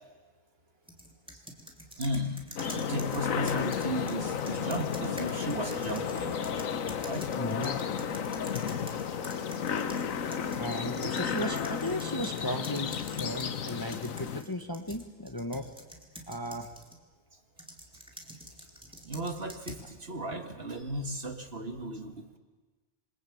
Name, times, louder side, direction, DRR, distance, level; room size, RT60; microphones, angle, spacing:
sound 1, 0.9-10.0 10.3-17.0 17.6-19.9, equal, 5° right, 3.2 m, -47 dB
voice 1, 2.0-6.4 7.0-7.3 19.0-22.4, equal, 45° right, 6 dB, 2.2 m, -35 dB
sound 2, 2.6-14.4, left 7 dB, 80° left, 1.4 m, -33 dB
voice 2, 7.4-7.9 10.6-15.8 16.3-16.7, left 1 dB, 15° left, 6 dB, 1.3 m, -35 dB
27.5 x 24.0 x 8.7 m, 1.3 s
omnidirectional pair, 1.4 m